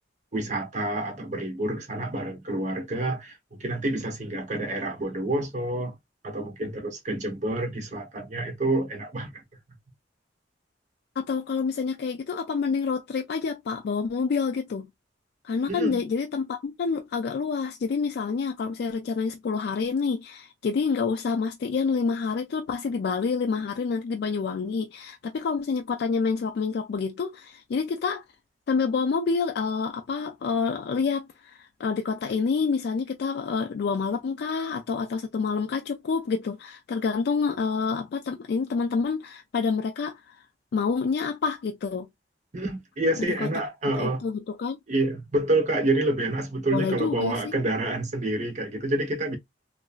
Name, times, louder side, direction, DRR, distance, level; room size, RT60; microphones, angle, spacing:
voice 1, 0.3-5.9 6.2-9.4 15.7-16.0 42.5-44.2 44.9-49.4, right 1 dB, 40° right, 0.9 m, -28 dB
voice 2, 11.2-14.9 15.4-28.2 28.7-40.4 40.7-42.1 43.4-43.5 44.0-44.8 46.7-47.5, left 5 dB, 60° left, 0.3 m, -28 dB
2.9 x 2.5 x 2.3 m
head